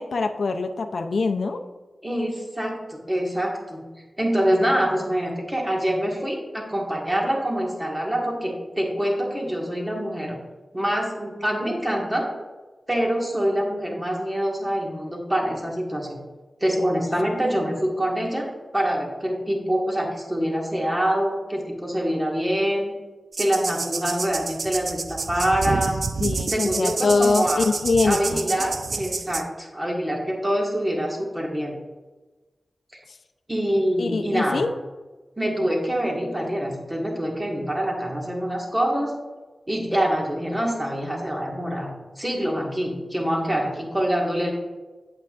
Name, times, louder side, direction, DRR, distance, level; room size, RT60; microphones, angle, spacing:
voice 1, 0.0-1.6 26.2-28.5 34.0-34.7, left 3 dB, 75° left, 6 dB, 0.5 m, -23 dB
voice 2, 2.0-3.9 4.2-10.4 10.7-12.3 12.9-16.2 16.6-18.5 18.7-22.9 23.4-26.0 26.5-27.7 28.0-31.7 33.5-34.6 35.4-39.1 39.7-44.5, equal, 15° right, -1 dB, 1.7 m, -25 dB
sound 1, 23.3-29.4, right 4 dB, 65° right, 0.4 m, -29 dB
8.4 x 7.7 x 2.5 m, 1.2 s
wide cardioid pair, 120°, 0 cm